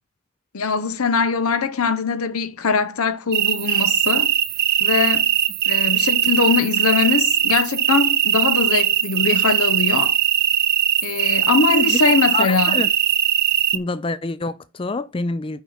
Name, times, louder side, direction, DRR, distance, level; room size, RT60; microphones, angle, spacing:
voice 1, 0.5-4.3 4.8-5.3 5.6-10.2 11.0-12.8, left 5 dB, 85° left, 0.7 m, -21 dB
sound 1, 3.3-13.8, right 11 dB, 45° right, 0.5 m, -20 dB
voice 2, 11.7-12.9 13.7-15.6, left 3 dB, 25° left, 0.4 m, -26 dB
6.0 x 5.5 x 6.4 m
head